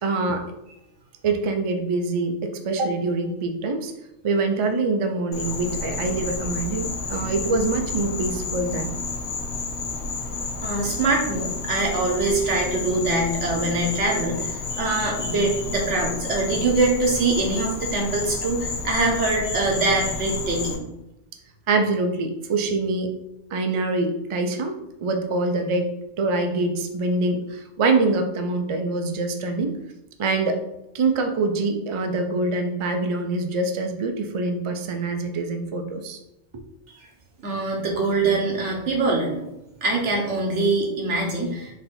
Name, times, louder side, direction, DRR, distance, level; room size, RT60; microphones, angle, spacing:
voice 1, 0.0-0.5 1.2-3.9 4.2-8.9 21.7-23.1 23.5-24.7 25.0-25.9 26.2-29.8 30.2-30.6 30.9-36.2, right 3 dB, 50° right, 6 dB, 0.3 m, -24 dB
Insect, 5.3-20.8, left 3 dB, 70° left, 1.0 m, -31 dB
voice 2, 10.6-20.9 37.4-39.4 39.8-41.7, right 3 dB, 85° right, 0 dB, 1.3 m, -23 dB
4.1 x 2.7 x 4.2 m, 0.89 s
omnidirectional pair, 1.2 m